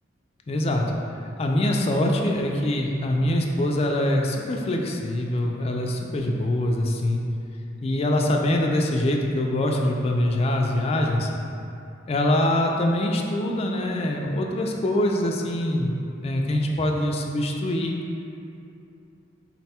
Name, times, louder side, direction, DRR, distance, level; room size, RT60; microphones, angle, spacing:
voice 1, 0.5-0.9 1.4-7.2 7.8-11.3 12.1-16.0 16.2-17.9, left 1 dB, 30° left, 1 dB, 0.3 m, -24 dB
4.0 x 2.2 x 4.2 m, 2.6 s
head